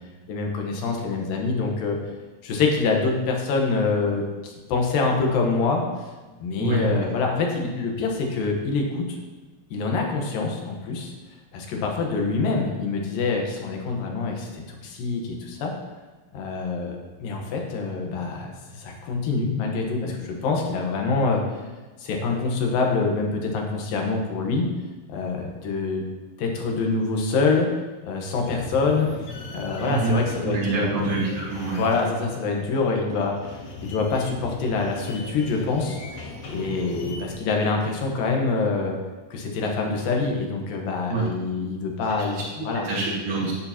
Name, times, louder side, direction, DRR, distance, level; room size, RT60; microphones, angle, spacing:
voice 1, 0.3-2.0 2.4-6.1 6.4-9.2 9.7-11.1 11.5-15.7 16.3-21.4 22.0-24.7 25.1-26.1 26.4-27.7 28.0-29.1 29.5-31.1 31.8-36.2 36.5-39.0 39.3-42.9, left 4 dB, 80° left, 1 dB, 3.0 m, -25 dB
voice 2, 6.6-7.0 29.8-30.2 30.4-31.8 41.1-41.3 42.8-43.5, right 4 dB, 70° right, -9 dB, 3.4 m, -26 dB
sound 1, 28.4-37.3, left 2 dB, 55° left, 2.1 m, -38 dB
11.0 x 9.6 x 3.0 m, 1.2 s
omnidirectional pair, 4.0 m